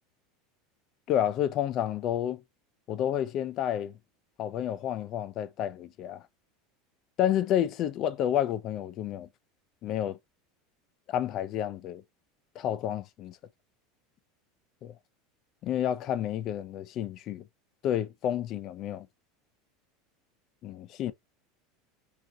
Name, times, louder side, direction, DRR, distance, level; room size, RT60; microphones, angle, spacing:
voice 1, 1.1-2.4 2.9-3.9 4.4-6.2 7.2-9.3 9.8-10.2 11.1-12.0 12.6-13.4 14.8-14.9 15.6-17.4 17.8-19.1 20.6-21.1, left 10 dB, 40° left, 0.4 m, -30 dB
3.7 x 2.4 x 2.7 m
supercardioid pair, 155°, 0 cm